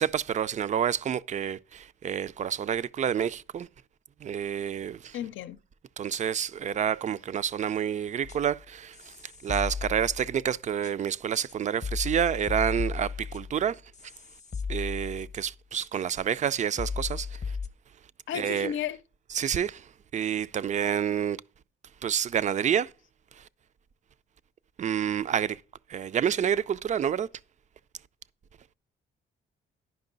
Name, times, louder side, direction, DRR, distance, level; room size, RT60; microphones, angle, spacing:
voice 1, 0.0-3.7 4.2-5.2 6.0-9.1 9.4-13.8 14.7-17.4 18.3-18.7 19.3-19.9 20.1-21.4 22.0-22.9 24.8-25.6 25.9-27.3, right 8 dB, 35° right, 0.4 m, -28 dB
voice 2, 5.1-5.6 18.3-19.0, left 10 dB, 75° left, 0.6 m, -33 dB
sound 1, 8.2-8.6 8.9-10.5 10.8-10.9 11.5-11.6 11.8-15.5 15.8-15.9 16.4-16.5 16.8-17.7, left 5 dB, 35° left, 0.8 m, -35 dB
10.5 x 5.3 x 3.9 m
cardioid pair, 90°, 20 cm